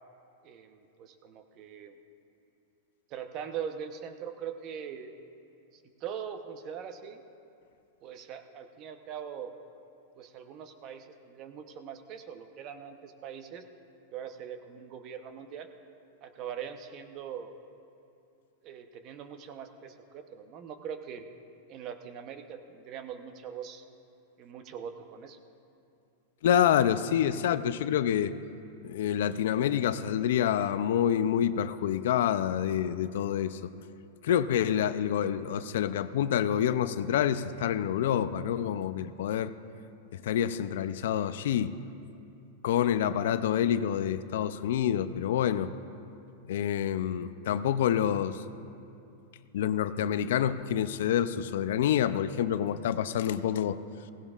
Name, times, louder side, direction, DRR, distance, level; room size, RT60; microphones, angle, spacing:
voice 1, 0.4-2.0 3.1-5.2 6.0-7.2 8.0-9.5 10.2-13.6 14.1-15.7 16.2-17.5 18.6-21.3 21.7-23.8 24.4-25.4, right 8 dB, 40° right, 7 dB, 0.8 m, -41 dB
voice 2, 26.4-28.3 28.8-33.6 34.2-39.5 40.1-41.7 42.6-45.7 46.5-48.4 49.5-53.8, left 9 dB, 75° left, 13 dB, 0.4 m, -27 dB
16.5 x 16.5 x 2.4 m, 2.6 s
supercardioid pair, 145°, 0 cm